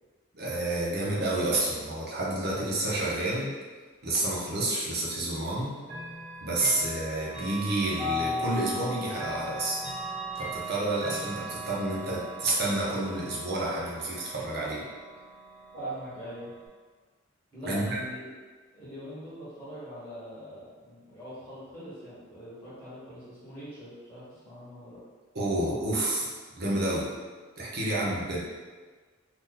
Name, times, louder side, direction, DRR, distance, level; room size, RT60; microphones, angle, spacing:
voice 1, 0.3-3.5 4.0-5.8 6.4-9.8 10.3-14.8 15.7-15.9 17.6-17.8 25.3-26.3 26.6-27.1 27.6-28.4, right 2 dB, 55° right, -5 dB, 0.8 m, -29 dB
Chime / Clock, 5.8-16.7, equal, 30° right, 1.1 m, -38 dB
voice 2, 6.5-6.8 15.8-16.5 17.5-18.3 18.7-25.0, equal, 10° left, -11 dB, 1.1 m, -43 dB
2.8 x 2.5 x 3.7 m, 1.4 s
head